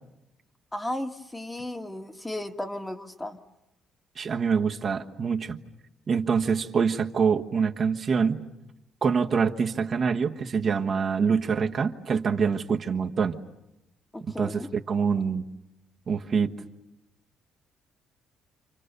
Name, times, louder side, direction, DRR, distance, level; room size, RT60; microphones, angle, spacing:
voice 1, 0.7-3.4 14.1-14.7, left 1 dB, 15° left, 5 dB, 1.7 m, -34 dB
voice 2, 4.2-5.6 6.1-8.4 9.0-13.4 14.4-15.4 16.1-16.5, right 6 dB, 50° right, 3 dB, 1.4 m, -25 dB
29.5 x 27.5 x 6.8 m, 0.92 s
cardioid pair, 80°, 0 cm